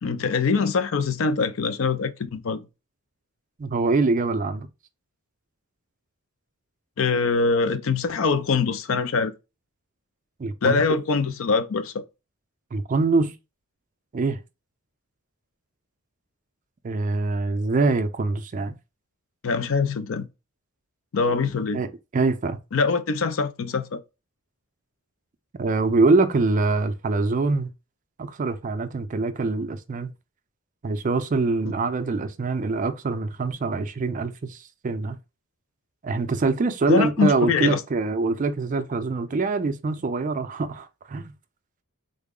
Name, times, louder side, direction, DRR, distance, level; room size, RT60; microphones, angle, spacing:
voice 1, 0.0-2.7 7.0-9.3 10.6-12.0 19.4-20.3 21.1-21.8 22.7-24.0 36.9-37.8, left 4 dB, 65° left, 0.4 m, -23 dB
voice 2, 3.6-4.7 10.4-10.8 12.7-13.3 14.1-14.4 16.8-18.8 21.7-22.6 25.6-27.7 28.2-30.1 30.8-35.2 36.0-41.3, right 3 dB, 35° right, 0.4 m, -24 dB
3.7 x 2.0 x 3.6 m
head